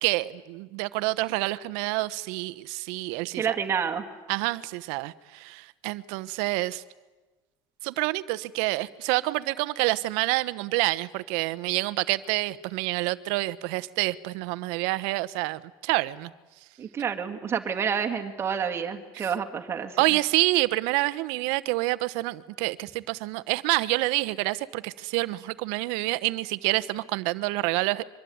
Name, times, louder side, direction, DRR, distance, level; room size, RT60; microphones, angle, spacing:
voice 1, 0.0-3.6 4.3-6.8 7.8-16.3 19.1-19.3 20.0-28.0, right 20 dB, 80° right, 1.0 m, -27 dB
voice 2, 3.4-4.0 16.8-20.1, right 7 dB, 25° right, 2.2 m, -29 dB
24.0 x 23.5 x 9.5 m
cardioid pair, 155°, 10 cm